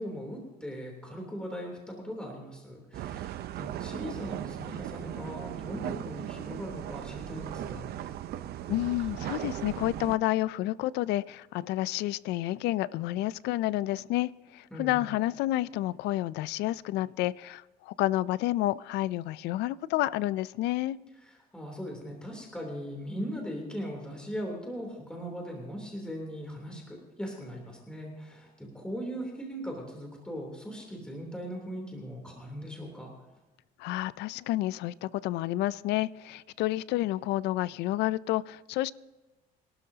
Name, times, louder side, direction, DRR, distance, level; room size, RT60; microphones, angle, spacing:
voice 1, 0.0-7.9 14.7-15.1 21.2-33.1, equal, 5° left, 3.2 m, -39 dB
sound 1, 2.9-10.2, right 11 dB, 70° right, 0.7 m, -38 dB
voice 2, 8.7-21.0 33.8-38.9, left 16 dB, 85° left, 0.4 m, -30 dB
25.0 x 12.0 x 2.8 m
cardioid pair, 110°, 17 cm